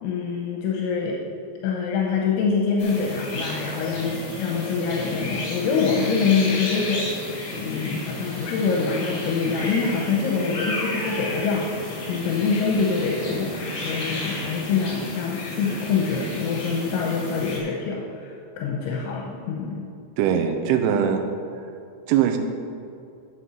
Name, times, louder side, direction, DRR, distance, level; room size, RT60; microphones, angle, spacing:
voice 1, 0.0-1.2 1.6-7.1 7.5-11.7 12.1-19.9, left 5 dB, 80° left, -1 dB, 3.3 m, -25 dB
sound 1, 2.8-17.6, left 2 dB, 55° left, 4.2 m, -33 dB
voice 2, 20.2-21.3 22.1-22.4, right 8 dB, 80° right, 5 dB, 3.2 m, -21 dB
9.7 x 7.5 x 6.3 m, 2.5 s
omnidirectional pair, 5.4 m